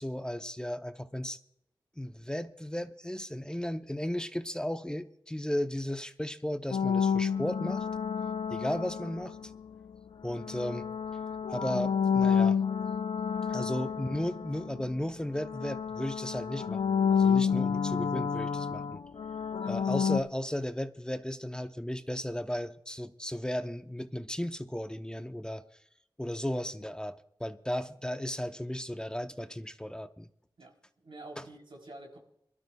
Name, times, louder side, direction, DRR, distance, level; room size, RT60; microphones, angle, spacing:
voice 1, 0.0-1.4 2.0-7.9 8.5-9.4 10.2-10.9 11.5-12.6 13.5-19.0 19.7-25.6 26.2-30.3 31.4-31.5, left 1 dB, 10° left, 0.6 m, -35 dB
sound 1, 6.7-9.6 10.3-15.1 15.4-20.2, left 6 dB, 80° left, 0.5 m, -29 dB
voice 2, 13.3-13.7 19.6-19.8 30.6-32.2, right 2 dB, 80° right, 3.4 m, -49 dB
25.5 x 12.5 x 2.2 m
wide cardioid pair, 75°, 9 cm